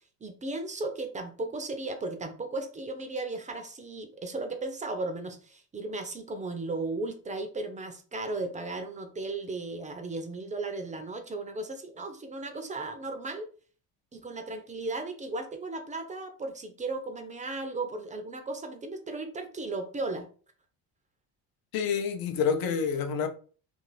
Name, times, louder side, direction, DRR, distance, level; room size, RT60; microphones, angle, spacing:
voice 1, 0.2-13.5 14.1-20.3, right 2 dB, 20° right, 0.4 m, -35 dB
voice 2, 21.7-23.3, left 6 dB, 65° left, 0.6 m, -28 dB
2.6 x 2.5 x 3.1 m
cardioid pair, 105°, 39 cm